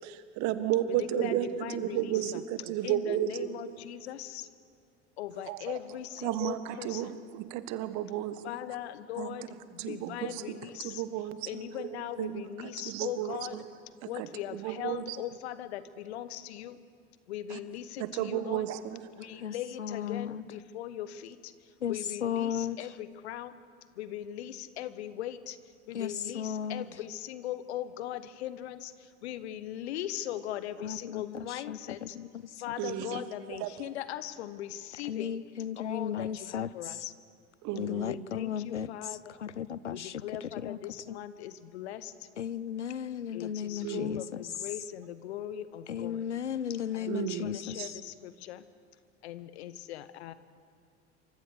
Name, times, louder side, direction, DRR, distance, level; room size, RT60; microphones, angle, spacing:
voice 1, 0.0-3.5 5.5-5.8 6.2-8.4 9.2-9.4 9.8-10.4 10.8-11.6 12.2-13.6 14.2-14.3 14.5-15.2 17.5-17.6 18.0-19.0 32.8-33.9 37.6-38.2 43.8-44.1 47.0-47.5 47.8-47.9, right 12 dB, 50° right, 12 dB, 1.7 m, -33 dB
voice 2, 0.9-2.4 2.8-4.5 5.2-7.2 8.4-11.0 11.5-13.6 14.0-16.8 17.3-18.6 19.1-21.5 21.9-23.5 23.9-25.6 25.9-32.2 32.5-35.4 35.8-37.1 38.0-39.3 39.9-42.1 43.3-46.2 46.9-48.6 49.2-50.3, left 11 dB, 65° left, 14 dB, 1.3 m, -40 dB
voice 3, 19.4-20.4 21.8-22.8 25.9-26.9 30.8-32.3 35.1-37.0 37.7-38.9 39.4-40.2 40.6-40.8 41.1-41.2 42.4-44.2 45.9-48.0, left 9 dB, 85° left, 20 dB, 0.6 m, -35 dB
27.5 x 25.0 x 6.6 m, 2.2 s
figure-of-eight pair, 70°, 34 cm